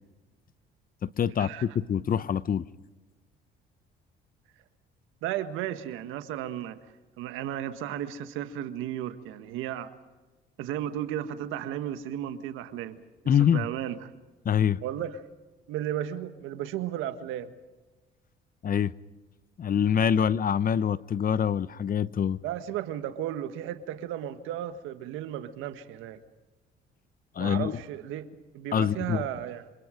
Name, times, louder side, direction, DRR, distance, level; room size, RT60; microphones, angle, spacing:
voice 1, 1.0-2.6 13.3-13.7 14.4-14.8 18.6-18.9 19.6-22.4 27.4-27.7 28.7-29.2, left 8 dB, 45° left, 0.9 m, -25 dB
voice 2, 5.2-6.8 7.2-9.9 10.6-14.1 14.8-15.2 15.7-17.5 22.4-26.2 27.4-29.7, right 11 dB, 80° right, 1.6 m, -34 dB
27.0 x 25.5 x 5.2 m
supercardioid pair, 70°, 20 cm